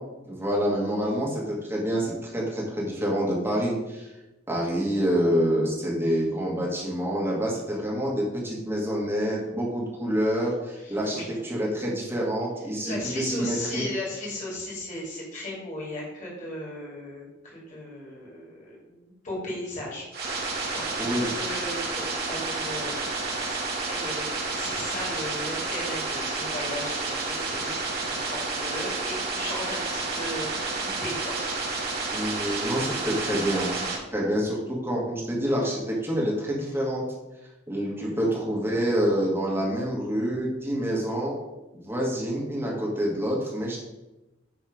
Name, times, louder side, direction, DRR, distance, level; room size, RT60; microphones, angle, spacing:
voice 1, 0.2-4.1 4.5-13.8 21.0-21.3 32.1-33.8 34.1-37.0 37.7-41.4 41.8-43.8, equal, 10° right, -4 dB, 2.3 m, -27 dB
voice 2, 10.8-11.4 12.8-27.7 28.1-31.3 38.0-38.3, left 1 dB, 40° left, -5 dB, 3.2 m, -36 dB
sound 1, 20.1-34.0, right 3 dB, 50° right, 2.3 m, -30 dB
9.7 x 4.2 x 5.2 m, 1.0 s
head